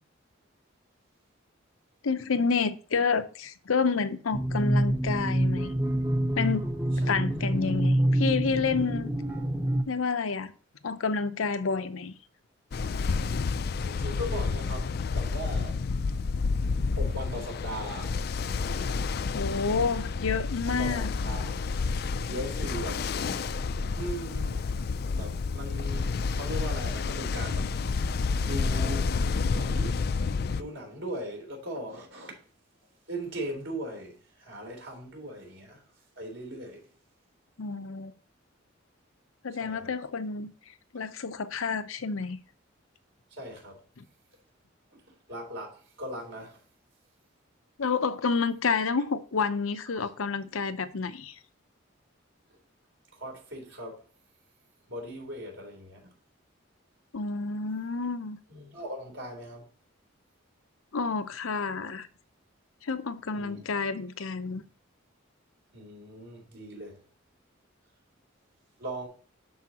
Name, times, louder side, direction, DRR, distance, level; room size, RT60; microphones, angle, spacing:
voice 1, 2.0-5.7 6.3-6.6 7.0-9.1 9.9-10.5 10.8-12.1 19.3-21.1 37.6-38.1 39.4-40.5 40.9-42.4 44.0-44.1 47.8-51.3 57.1-58.4 60.9-62.1 62.8-64.6, left 5 dB, 90° left, 0.7 m, -29 dB
sound 1, 4.3-9.8, right 1 dB, 10° right, 0.8 m, -27 dB
Ocean, 12.7-30.6, left 4 dB, 50° left, 0.4 m, -30 dB
voice 2, 13.9-15.8 16.9-18.3 20.6-21.6 22.3-23.0 24.0-24.8 25.2-28.0 28.4-29.2 29.5-30.0 30.4-32.4 33.1-35.9 36.2-36.9 39.6-39.9 43.3-43.8 44.9-46.6 49.9-50.1 53.1-54.0 54.9-56.1 58.5-59.7 63.3-63.6 65.7-67.0 68.8-69.1, right 1 dB, 65° right, 3.5 m, -39 dB
12.0 x 4.8 x 2.9 m
head